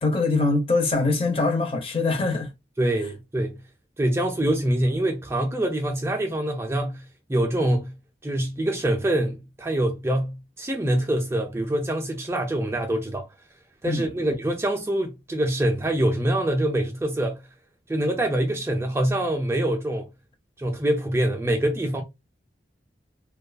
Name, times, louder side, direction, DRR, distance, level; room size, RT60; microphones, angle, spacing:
voice 1, 0.0-2.5 13.9-14.0, left 3 dB, 30° left, 0.6 m, -23 dB
voice 2, 2.8-3.5 4.0-7.0 7.3-7.9 8.2-13.3 13.8-17.4 17.9-20.1 20.6-22.0, right 1 dB, 15° right, 0.3 m, -25 dB
2.6 x 2.3 x 2.2 m
head